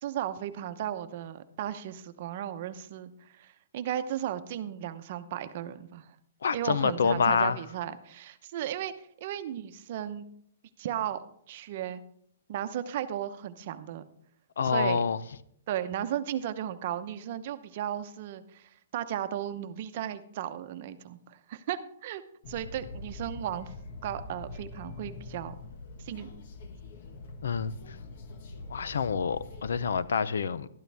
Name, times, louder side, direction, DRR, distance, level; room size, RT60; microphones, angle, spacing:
voice 1, 0.0-6.0 6.5-8.9 9.2-10.3 10.8-12.0 12.5-14.0 14.6-15.0 15.7-22.2 22.5-23.7 24.0-25.5 26.0-26.3, right 11 dB, 45° right, 0.8 m, -35 dB
voice 2, 6.4-7.6 14.6-15.2 27.4-27.7 28.7-30.7, left 6 dB, 85° left, 0.6 m, -27 dB
sound 1, 22.4-30.0, left 3 dB, 55° left, 1.3 m, -44 dB
12.5 x 12.0 x 3.4 m
hypercardioid pair, 155°, 0 cm